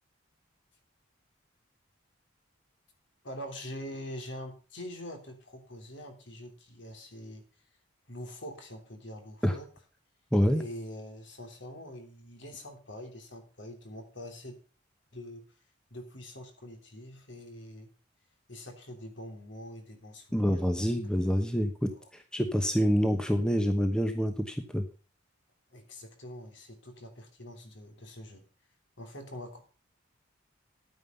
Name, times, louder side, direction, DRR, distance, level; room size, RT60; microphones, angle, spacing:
voice 1, 3.2-7.4 8.1-9.7 10.5-14.6 15.1-15.4 15.9-17.9 18.5-20.9 21.9-22.1 25.7-28.4 29.0-29.6, left 1 dB, 60° left, 5 dB, 3.2 m, -44 dB
voice 2, 10.3-10.6 20.3-24.8, equal, 5° left, 6 dB, 1.0 m, -27 dB
11.0 x 9.3 x 5.4 m, 0.36 s
head